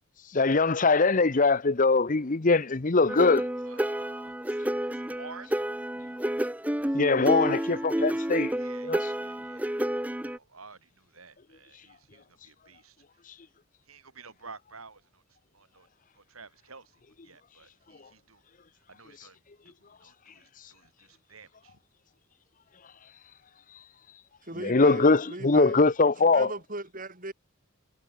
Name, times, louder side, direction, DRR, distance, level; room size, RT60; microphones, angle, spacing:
voice 1, 0.3-3.4 6.9-8.5 8.9-9.0 24.6-26.5, left 3 dB, 40° left, 0.8 m, -22 dB
sound 1, 3.1-10.4, right 1 dB, 5° right, 0.9 m, -30 dB
voice 2, 3.6-4.6 4.9-5.5 8.5-9.8 10.1-13.2 13.8-15.9 16.1-18.4 18.9-21.8, right 4 dB, 85° right, 7.3 m, -51 dB
voice 3, 24.4-27.3, right 2 dB, 40° right, 7.2 m, -39 dB
head